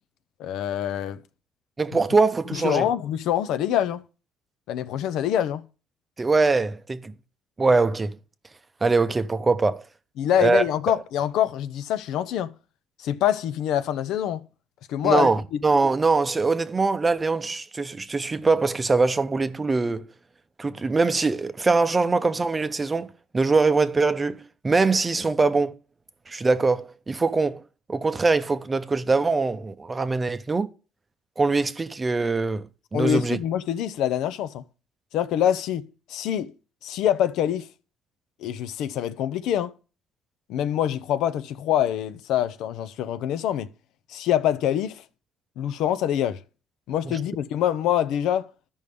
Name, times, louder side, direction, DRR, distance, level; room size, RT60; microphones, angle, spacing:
voice 1, 0.4-1.2 2.5-4.0 4.7-5.6 10.2-12.5 13.0-14.4 14.9-15.6 32.9-34.6 35.1-36.5 36.8-37.7 38.4-39.7 40.5-43.7 44.1-45.0 45.6-46.4 46.9-48.5, left 10 dB, 75° left, 0.5 m, -25 dB
voice 2, 1.8-2.9 6.2-7.1 7.6-8.1 8.8-9.8 10.4-10.6 15.0-20.1 20.6-25.8 26.3-27.6 27.9-30.7 31.4-32.7 32.9-33.4 47.1-47.2, right 3 dB, 20° right, 0.6 m, -22 dB
14.0 x 5.4 x 3.4 m
cardioid pair, 115°, 0 cm